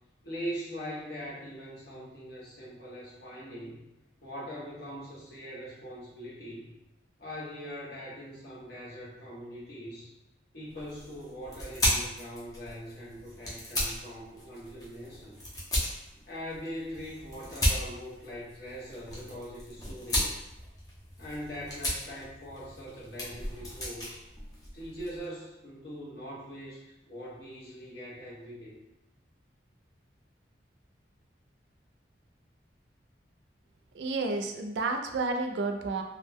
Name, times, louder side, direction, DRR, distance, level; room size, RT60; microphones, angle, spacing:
voice 1, 0.2-3.8 4.2-6.7 7.2-10.1 10.5-15.3 16.3-20.4 21.2-24.2 24.7-28.7, equal, 60° left, -6 dB, 0.9 m, -42 dB
sound 1, 10.7-25.3, equal, 20° left, 0.6 m, -35 dB
voice 2, 34.0-36.0, right 3 dB, 75° right, 4 dB, 0.4 m, -31 dB
2.3 x 2.1 x 3.3 m, 0.95 s
head